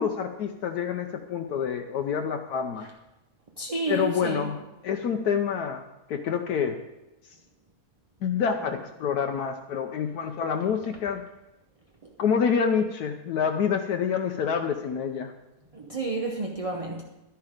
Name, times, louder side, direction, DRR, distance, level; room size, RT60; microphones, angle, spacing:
voice 1, 0.0-2.9 3.9-5.8 6.1-6.8 8.2-11.2 12.2-15.3, left 7 dB, 75° left, 1.2 m, -27 dB
voice 2, 3.6-4.5 15.7-17.0, right 3 dB, 35° right, 0.5 m, -31 dB
11.5 x 10.5 x 5.0 m
omnidirectional pair, 1.7 m